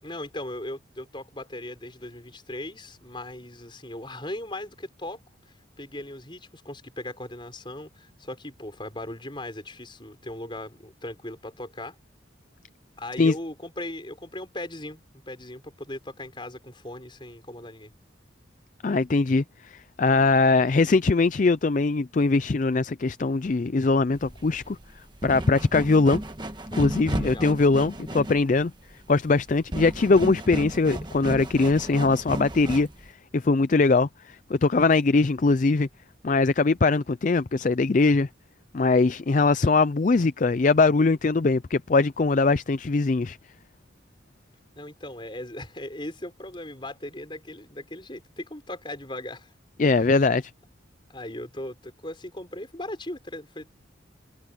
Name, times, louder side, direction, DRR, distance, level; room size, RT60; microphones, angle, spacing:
voice 1, 0.0-5.2 5.5-12.0 13.0-17.9 27.1-27.5 44.7-49.5 51.1-53.8, left 1 dB, 25° left, 5.8 m, -38 dB
voice 2, 18.8-19.7 20.0-24.8 25.2-26.2 26.7-28.7 29.1-32.9 33.3-34.1 34.5-35.9 36.2-38.3 38.7-43.4 49.8-50.5, left 3 dB, 40° left, 0.4 m, -21 dB
sound 1, 24.1-33.1, right 1 dB, 25° right, 1.5 m, -34 dB
head